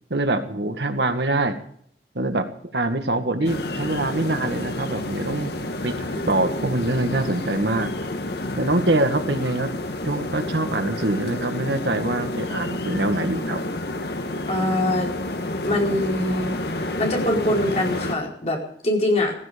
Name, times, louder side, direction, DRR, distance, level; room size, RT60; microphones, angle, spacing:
voice 1, 0.1-1.5 2.2-2.5 2.7-7.9 8.6-9.7 10.0-13.6, right 2 dB, 75° right, 7 dB, 1.9 m, -24 dB
sound 1, 3.4-18.1, left 1 dB, 65° left, 1.7 m, -29 dB
voice 2, 14.5-15.1 15.6-16.5 17.0-19.3, left 1 dB, 40° left, -1 dB, 4.7 m, -23 dB
16.0 x 16.0 x 5.3 m, 0.63 s
head